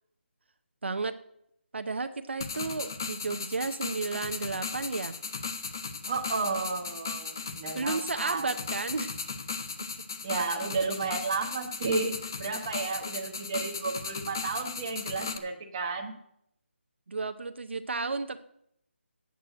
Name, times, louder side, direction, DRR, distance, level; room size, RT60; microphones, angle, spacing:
voice 1, 0.8-1.2 1.7-5.1 7.7-9.1 17.1-18.4, right 3 dB, 65° right, 9 dB, 0.7 m, -33 dB
sound 1, 2.4-15.4, left 5 dB, 20° left, 0.5 m, -37 dB
voice 2, 6.1-8.5 10.2-16.1, right 4 dB, 20° right, 1 dB, 1.1 m, -32 dB
8.2 x 7.6 x 7.7 m, 0.74 s
hypercardioid pair, 175°, 7 cm